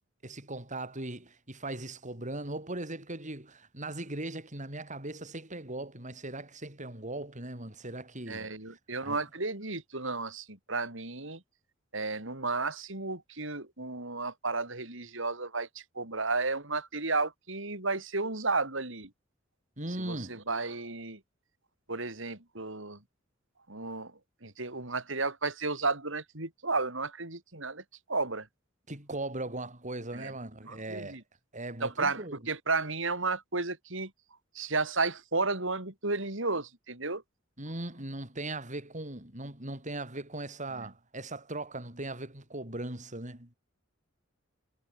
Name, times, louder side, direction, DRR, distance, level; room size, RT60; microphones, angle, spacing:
voice 1, 0.2-8.5 9.0-9.2 19.8-20.4 28.9-31.2 31.5-32.4 37.6-43.5, right 2 dB, 40° right, 7.0 m, -39 dB
voice 2, 8.3-11.4 11.9-19.1 20.1-21.2 21.9-23.0 23.7-24.1 24.4-27.8 28.1-28.5 30.1-30.3 30.6-31.2 31.8-34.1 34.6-37.2, right 3 dB, 70° right, 5.3 m, -33 dB
head